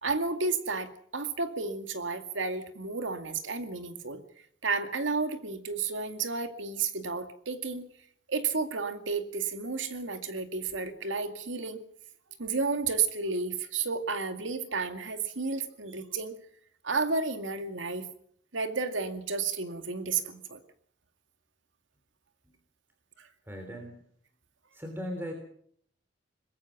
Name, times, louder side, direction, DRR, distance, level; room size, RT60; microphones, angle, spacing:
voice 1, 0.0-4.2 4.6-7.9 8.3-11.8 12.4-16.4 16.8-18.1 18.5-20.6 23.2-23.3, right 4 dB, 85° right, 8 dB, 2.2 m, -32 dB
voice 2, 23.5-24.0 24.7-25.3, equal, 10° right, 3 dB, 3.4 m, -37 dB
23.0 x 20.5 x 6.0 m, 0.63 s
head